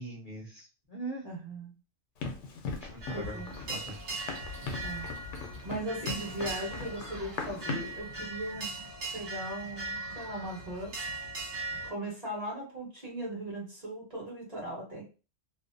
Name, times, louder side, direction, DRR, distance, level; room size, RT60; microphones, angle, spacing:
voice 1, 0.0-1.2 2.9-3.4 3.7-4.0, right 1 dB, 55° left, -3 dB, 0.6 m, -40 dB
voice 2, 1.2-1.7 3.1-3.5 4.8-5.1 5.6-8.8 9.1-10.9 11.8-15.0, right 1 dB, 35° right, -4 dB, 1.1 m, -38 dB
Run, 2.2-8.0, left 4 dB, 80° left, 0.9 m, -39 dB
sound 1, 3.0-11.9, right 2 dB, 70° right, 1.1 m, -39 dB
2.6 x 2.0 x 2.5 m, 0.33 s
omnidirectional pair, 1.2 m